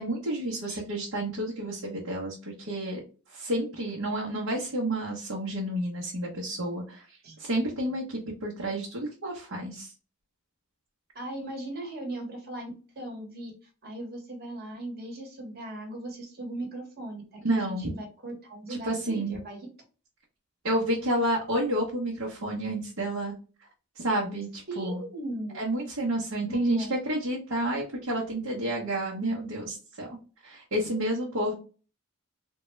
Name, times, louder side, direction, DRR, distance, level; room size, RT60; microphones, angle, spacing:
voice 1, 0.0-3.0 3.3-7.1 7.4-9.9 17.4-17.9 18.7-19.3 20.6-23.3 24.0-25.0 25.5-30.1 30.4-31.5, right 1 dB, 75° right, -5 dB, 0.9 m, -30 dB
voice 2, 11.1-13.5 13.8-19.7 24.7-25.6 26.5-26.9, right 1 dB, 45° right, 0 dB, 1.2 m, -38 dB
3.6 x 2.2 x 3.1 m, 0.36 s
head